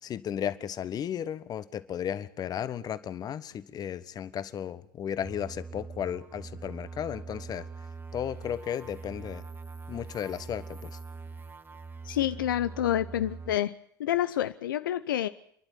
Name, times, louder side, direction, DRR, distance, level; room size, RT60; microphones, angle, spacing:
voice 1, 0.0-7.7 8.1-9.4 9.9-11.0, left 9 dB, 35° left, 14 dB, 1.4 m, -34 dB
sound 1, 5.2-13.6, right 4 dB, 20° right, 1.4 m, -43 dB
voice 2, 12.0-13.7 14.0-15.3, left 12 dB, 75° left, 11 dB, 0.8 m, -28 dB
29.5 x 11.5 x 9.5 m, 0.66 s
hypercardioid pair, 80°, 11 cm